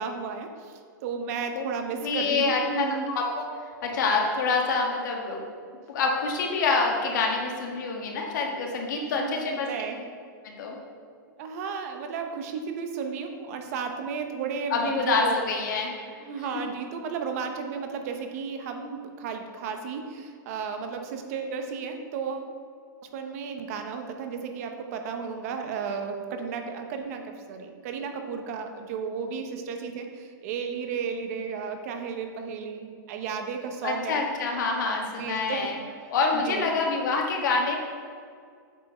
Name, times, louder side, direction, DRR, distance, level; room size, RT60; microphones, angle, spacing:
voice 1, 0.0-3.1 9.0-10.0 11.4-15.4 16.2-22.5 23.1-34.2 35.0-35.7 36.3-36.7, right 6 dB, 45° right, 5 dB, 0.8 m, -33 dB
voice 2, 2.0-2.8 3.1-3.4 3.8-5.4 5.9-9.7 10.4-10.8 14.7-15.9 33.8-35.7 36.1-37.8, left 4 dB, 65° left, 1 dB, 1.4 m, -26 dB
8.1 x 4.3 x 4.3 m, 2.2 s
hypercardioid pair, 155°, 11 cm